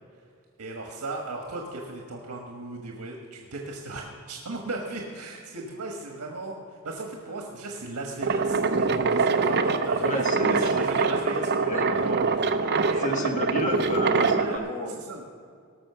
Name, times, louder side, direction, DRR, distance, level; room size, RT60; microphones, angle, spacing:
voice 1, 0.6-13.3 14.4-15.3, right 2 dB, 90° right, 1 dB, 1.4 m, -36 dB
sound 1, 8.2-14.6, right 4 dB, 50° right, 0.7 m, -24 dB
voice 2, 10.0-10.6 11.6-11.9 12.6-15.0, equal, 35° left, 2 dB, 1.7 m, -31 dB
17.5 x 6.3 x 6.8 m, 2.2 s
head